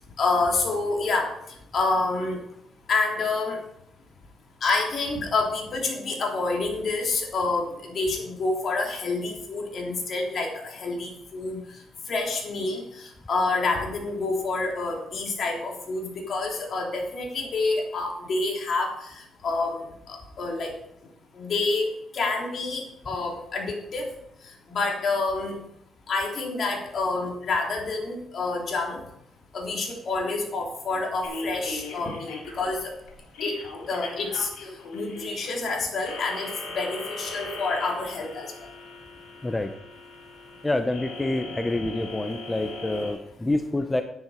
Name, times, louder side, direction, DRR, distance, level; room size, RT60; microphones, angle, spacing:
voice 1, 0.2-1.3 1.7-2.4 2.9-3.6 4.6-11.6 12.1-20.7 21.4-24.1 24.7-25.6 26.1-29.0 29.5-32.9 33.4-33.6 33.9-34.5 34.9-38.5, left 3 dB, 55° left, 0 dB, 3.5 m, -28 dB
sound 1, 31.2-43.1, left 2 dB, 85° left, 4.2 m, -39 dB
voice 2, 40.6-44.0, left 2 dB, 15° left, 7 dB, 0.8 m, -27 dB
10.5 x 9.8 x 5.2 m, 0.77 s
cardioid pair, 90°, 0 cm